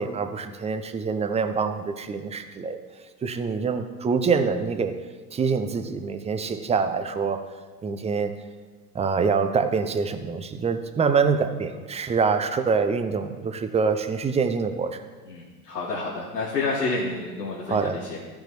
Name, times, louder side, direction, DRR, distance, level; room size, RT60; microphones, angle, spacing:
voice 1, 0.0-2.8 3.2-4.9 5.3-7.4 7.8-8.3 8.9-15.0 17.7-18.0, right 5 dB, 15° right, 8 dB, 0.5 m, -25 dB
voice 2, 15.3-18.2, left 3 dB, 75° left, -6 dB, 1.6 m, -29 dB
15.5 x 5.3 x 3.1 m, 1.4 s
figure-of-eight pair, 70°, 47 cm